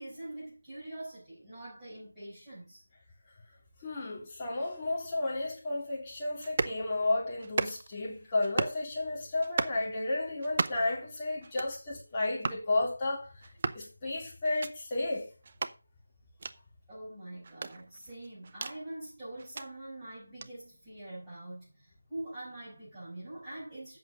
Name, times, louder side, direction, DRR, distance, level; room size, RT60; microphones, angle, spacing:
voice 1, 0.0-2.8 16.9-24.0, right 1 dB, 10° right, 5.7 m, -44 dB
voice 2, 3.8-13.3 13.7-15.3, left 2 dB, 20° left, 3.2 m, -32 dB
sound 1, 6.4-6.8 7.4-8.0 8.4-8.8 9.4-9.8 10.4-10.9 11.4-11.8 12.4-12.6 13.4-13.8 14.4-14.7 15.4-15.7 16.4-16.5 17.4-18.8 19.4-19.7 20.4-20.5, right 4 dB, 35° right, 0.6 m, -34 dB
8.0 x 6.2 x 6.5 m
figure-of-eight pair, 165°, 0 cm